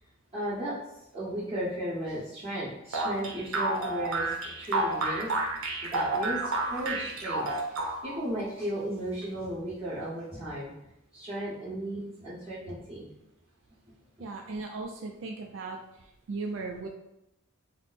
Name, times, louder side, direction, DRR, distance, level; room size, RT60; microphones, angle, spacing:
voice 1, 0.3-0.7 1.1-4.3 4.6-5.3 5.6-13.1, right 1 dB, 30° right, -12 dB, 1.5 m, -35 dB
sound 1, 2.9-8.2, right 2 dB, 85° right, 0.7 m, -30 dB
voice 2, 14.2-15.8 16.3-16.9, right 3 dB, 65° right, 2 dB, 0.3 m, -36 dB
3.4 x 2.0 x 4.1 m, 0.84 s
head